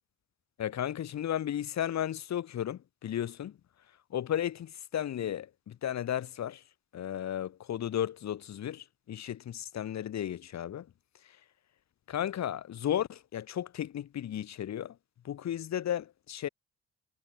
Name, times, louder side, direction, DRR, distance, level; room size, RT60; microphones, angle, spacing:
voice 1, 0.6-3.5 4.1-6.6 6.9-10.9 12.1-14.9 15.2-16.5, left 10 dB, 60° left, 2.2 m, -34 dB
cardioid pair, 90°, 30 cm